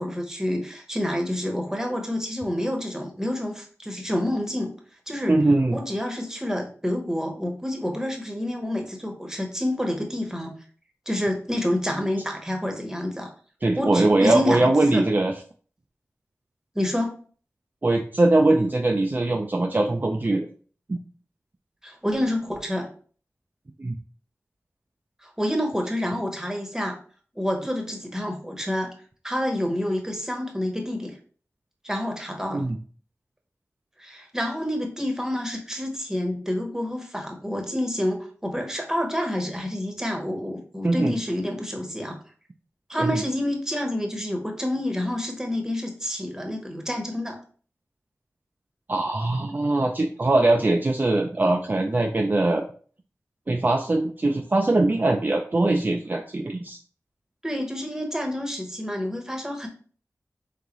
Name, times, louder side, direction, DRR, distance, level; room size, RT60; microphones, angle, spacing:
voice 1, 0.0-4.7 5.1-5.3 5.7-10.6 11.1-13.3 13.8-15.1 16.7-17.1 21.8-22.9 25.2-27.0 27.4-28.9 29.2-31.2 31.8-32.7 34.0-42.2 42.9-47.4 57.4-59.7, left 1 dB, 10° right, 2 dB, 1.0 m, -28 dB
voice 2, 5.3-5.8 13.6-15.3 17.8-20.5 20.9-21.0 23.8-23.9 32.5-32.8 40.8-41.1 43.0-43.2 48.9-52.6 53.5-56.8, right 2 dB, 35° right, 2 dB, 0.4 m, -21 dB
3.8 x 3.7 x 3.0 m, 0.43 s
wide cardioid pair, 75°, 6 cm